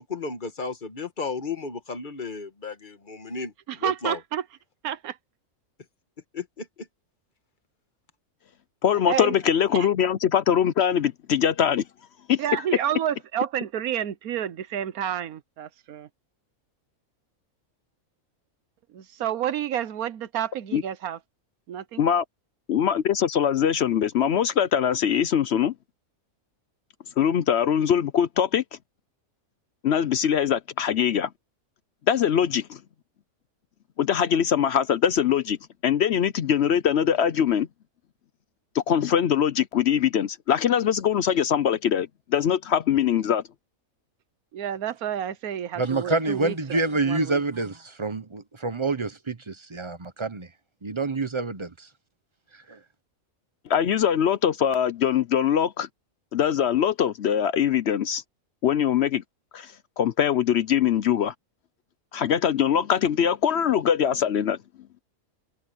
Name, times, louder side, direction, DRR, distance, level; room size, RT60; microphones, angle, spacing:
voice 1, 0.0-3.5 3.8-4.2 6.3-6.7, left 4 dB, 35° left, 1.5 m, -34 dB
voice 2, 3.7-4.4 4.8-5.2 9.1-9.3 9.7-9.9 12.4-16.1 18.9-21.2 21.7-22.0 44.5-47.4, right 10 dB, 85° right, 1.4 m, -30 dB
voice 3, 8.8-11.8 12.3-12.6 20.7-20.8 22.0-22.2 22.7-25.7 27.2-28.6 29.8-31.3 32.1-32.8 34.0-35.6 35.8-37.7 38.7-43.4 53.7-55.9 56.3-58.2 58.6-59.2 59.5-61.3 62.1-64.6, left 9 dB, 60° left, 0.8 m, -22 dB
voice 4, 45.8-50.5 50.8-51.7 52.7-52.8, right 3 dB, 25° right, 0.8 m, -27 dB
omnidirectional pair, 1.5 m